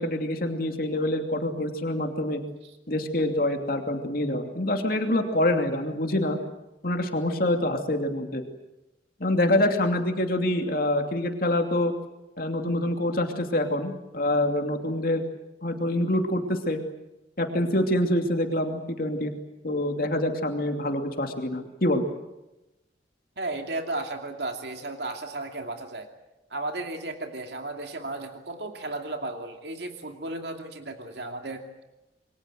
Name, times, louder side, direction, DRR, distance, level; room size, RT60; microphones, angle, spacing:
voice 1, 0.0-2.4 2.9-6.4 6.8-8.4 9.2-11.9 12.4-15.2 15.6-16.8 17.4-19.3 19.6-22.1, left 1 dB, 50° left, 4 dB, 2.8 m, -26 dB
voice 2, 23.4-26.1 26.5-31.7, right 2 dB, 65° right, 4 dB, 2.6 m, -34 dB
27.5 x 23.0 x 7.8 m, 0.96 s
head